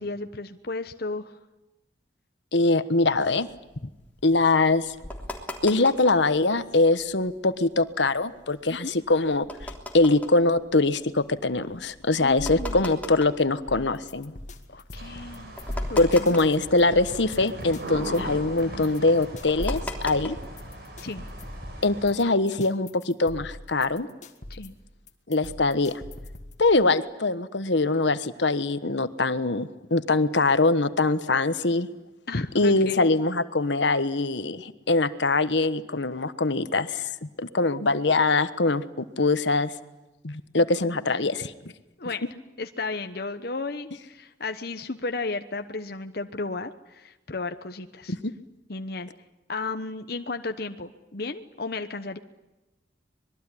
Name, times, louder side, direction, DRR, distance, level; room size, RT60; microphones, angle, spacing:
voice 1, 0.0-1.4 3.8-3.9 8.7-8.9 12.2-12.9 14.7-15.5 15.9-16.4 18.5-19.2 21.0-21.2 24.5-24.7 32.3-33.1 40.6-41.3 42.0-42.3 42.6-48.1 48.7-49.1 49.5-52.2, left 3 dB, 55° left, 7 dB, 1.1 m, -34 dB
voice 2, 2.5-3.5 4.2-4.9 5.6-9.4 9.9-14.3 16.0-20.3 21.8-24.1 25.3-25.9 26.6-31.9 32.5-39.7 40.2-41.5 48.1-48.3, left 3 dB, 75° left, 12 dB, 1.3 m, -23 dB
sound 1, 3.1-6.3 6.7-6.8 7.0-7.3 7.8-14.4 14.9-15.0 15.2-17.4 17.6-20.7, left 1 dB, 10° left, 3.4 m, -37 dB
sound 2, 13.7-26.7, left 1 dB, 40° left, 2.2 m, -43 dB
sound 3, 15.0-22.1, right 1 dB, 60° right, 6.1 m, -40 dB
25.5 x 21.5 x 9.9 m, 1.0 s
head